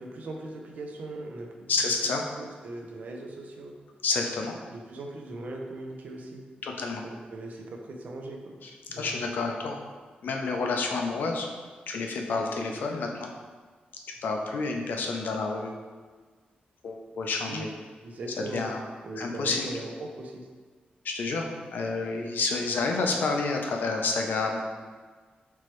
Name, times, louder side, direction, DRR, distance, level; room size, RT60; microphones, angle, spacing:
voice 1, 0.0-1.7 2.0-3.8 4.7-6.5 7.0-8.6 8.9-9.1 17.5-17.7 18.0-18.7 19.0-20.5, right 2 dB, 55° right, 1 dB, 0.5 m, -39 dB
voice 2, 1.7-2.2 4.0-4.5 6.6-7.0 8.6-8.7 9.0-9.8 10.2-11.5 11.9-13.3 14.2-15.7 16.8-17.7 18.4-18.8 19.2-19.7 21.0-24.6, left 3 dB, 75° left, 2 dB, 0.5 m, -29 dB
4.4 x 3.1 x 3.0 m, 1.5 s
wide cardioid pair, 175°, 3 cm